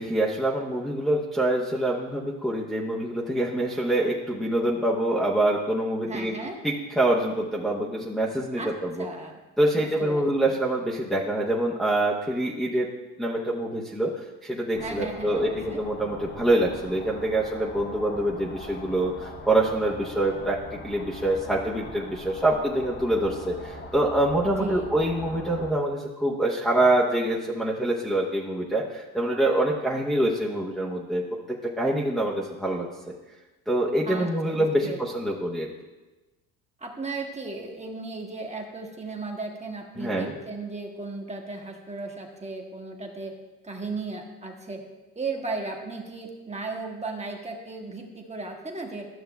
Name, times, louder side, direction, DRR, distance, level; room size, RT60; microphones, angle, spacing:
voice 1, 0.0-6.3 6.6-9.1 9.6-12.9 13.2-20.6 20.8-31.2 31.5-33.1 33.7-35.7 40.0-40.3, right 1 dB, ahead, -5 dB, 1.0 m, -25 dB
voice 2, 6.1-6.6 8.6-8.7 9.0-9.4 9.7-10.3 14.8-15.8 24.6-24.9 34.0-35.0 36.8-43.3 43.6-44.8 45.1-49.1, right 3 dB, 15° right, 1 dB, 1.3 m, -35 dB
sound 1, 14.7-25.7, left 2 dB, 30° left, 1.0 m, -41 dB
13.0 x 6.5 x 2.3 m, 1.1 s
supercardioid pair, 75°, 39 cm